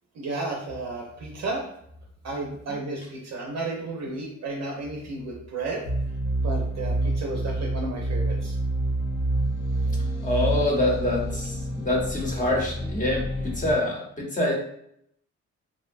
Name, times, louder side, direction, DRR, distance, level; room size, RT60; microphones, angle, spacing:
voice 1, 0.1-1.7 2.2-5.8 6.4-8.5, right 2 dB, 60° right, -1 dB, 0.6 m, -33 dB
sound 1, 5.8-13.7, right 1 dB, 85° left, 0.9 m, -28 dB
voice 2, 10.2-14.5, left 1 dB, 25° left, -1 dB, 0.8 m, -26 dB
2.7 x 2.1 x 2.5 m, 0.71 s
cardioid pair, 90°, 30 cm